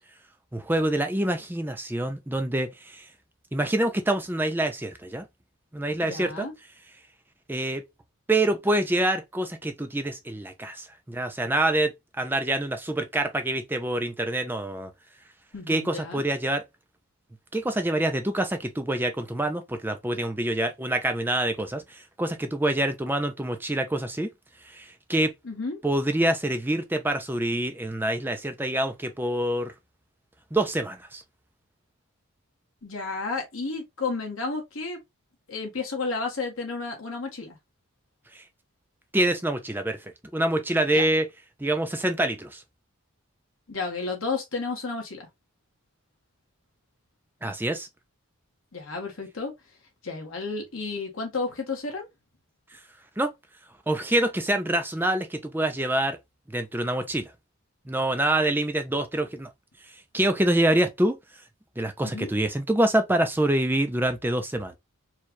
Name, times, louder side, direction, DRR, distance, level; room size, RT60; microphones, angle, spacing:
voice 1, 0.5-3.1 3.5-5.3 5.7-6.5 7.5-7.8 8.3-14.9 15.7-16.6 17.5-24.3 24.6-25.3 25.8-29.7 30.5-31.2 38.3-38.4 39.1-41.3 41.6-42.6 47.4-47.9 52.7-52.8 53.2-53.3 53.9-56.2 56.5-57.3 57.9-59.5 59.8-61.2 61.8-64.8, right 1 dB, 10° right, 0.4 m, -26 dB
voice 2, 6.0-6.5 15.5-16.2 25.4-25.8 32.8-35.0 35.5-37.6 40.9-41.0 43.7-45.3 48.7-49.5 50.0-52.1 62.0-62.3, left 4 dB, 65° left, 1.5 m, -32 dB
4.5 x 2.3 x 3.0 m
head